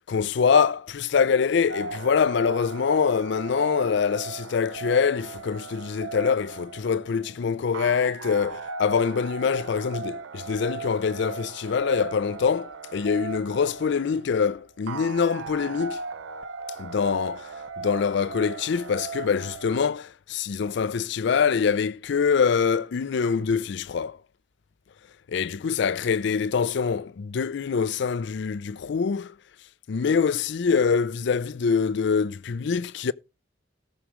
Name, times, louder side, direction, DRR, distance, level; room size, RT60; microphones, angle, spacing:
voice 1, 0.1-16.0 16.8-24.2 25.3-29.3 29.9-33.1, left 6 dB, 65° left, 0.4 m, -24 dB
sound 1, 1.7-19.8, right 4 dB, 90° right, 0.6 m, -38 dB
18.0 x 6.1 x 3.0 m
head